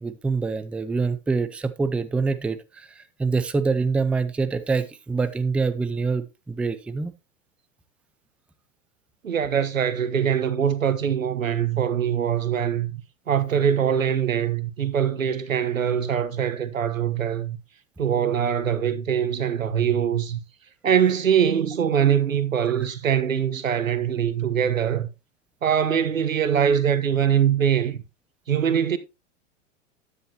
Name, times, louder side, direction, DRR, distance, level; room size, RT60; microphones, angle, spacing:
voice 1, 0.0-7.1, right 4 dB, 5° right, 0.4 m, -25 dB
voice 2, 9.2-13.0 13.3-17.6 18.0-20.4 20.8-25.1 25.6-28.0 28.5-29.0, right 8 dB, 85° right, 1.3 m, -23 dB
10.0 x 9.9 x 2.9 m
hypercardioid pair, 105°, 39 cm